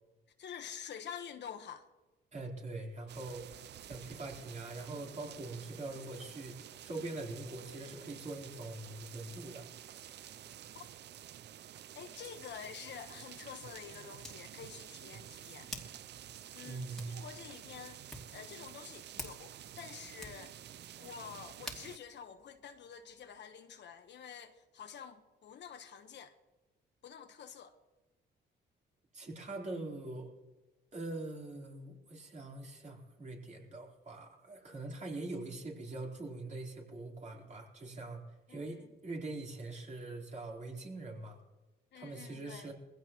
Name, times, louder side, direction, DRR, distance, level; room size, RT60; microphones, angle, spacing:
voice 1, 0.4-1.9 10.7-10.8 11.9-15.7 16.5-18.0 18.3-20.6 21.0-26.4 27.0-27.7 38.5-38.9 41.9-42.7, left 8 dB, 65° left, 1.3 m, -48 dB
voice 2, 2.3-3.4 3.8-9.7 16.6-17.2 29.1-30.3 30.9-41.4 41.9-42.7, right 2 dB, 35° right, 4.2 m, -43 dB
sound 1, 3.1-22.0, right 11 dB, 60° right, 0.5 m, -50 dB
Hands, 12.6-23.4, left 1 dB, ahead, 2.8 m, -52 dB
21.5 x 16.0 x 3.1 m
cardioid pair, 90°, 20 cm